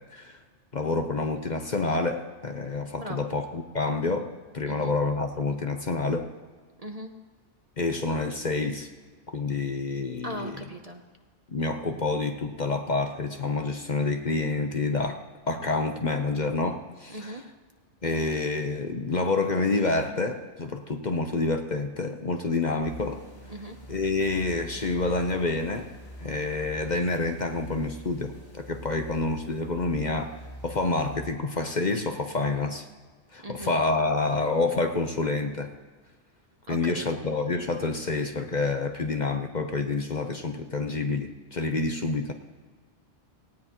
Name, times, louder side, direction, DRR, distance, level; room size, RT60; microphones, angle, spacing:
voice 1, 0.7-6.3 7.8-8.9 9.3-10.6 11.5-15.2 15.5-17.4 18.0-23.2 23.9-25.9 26.2-30.4 30.6-32.9 33.3-35.7 36.7-42.3, left 3 dB, 40° left, 5 dB, 0.9 m, -28 dB
voice 2, 6.8-7.1 10.2-11.0 17.1-17.4 23.5-23.8 33.4-33.7 36.7-37.0, right 1 dB, 35° right, 4 dB, 0.8 m, -38 dB
sound 1, 22.8-31.3, equal, 70° left, 5.6 m, -44 dB
18.0 x 17.0 x 3.0 m, 1.5 s
omnidirectional pair, 1.2 m